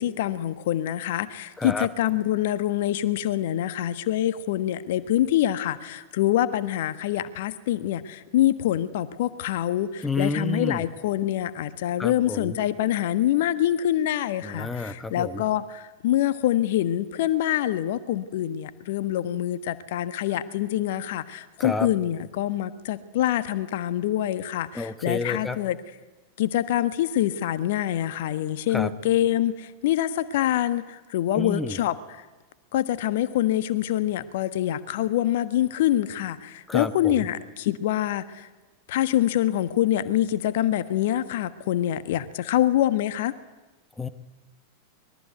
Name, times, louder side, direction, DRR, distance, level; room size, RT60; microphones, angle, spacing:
voice 1, 0.0-25.8 26.4-32.2 32.7-38.5 38.9-43.3, left 12 dB, 55° left, 13 dB, 1.4 m, -25 dB
voice 2, 1.6-1.9 10.0-10.9 12.0-12.6 14.4-15.4 21.6-21.9 24.7-25.6 28.7-28.9 31.3-31.8 36.7-37.3 44.0-44.1, left 3 dB, 10° left, 12 dB, 1.2 m, -30 dB
24.0 x 22.0 x 9.4 m, 1.2 s
figure-of-eight pair, 90°, 0 cm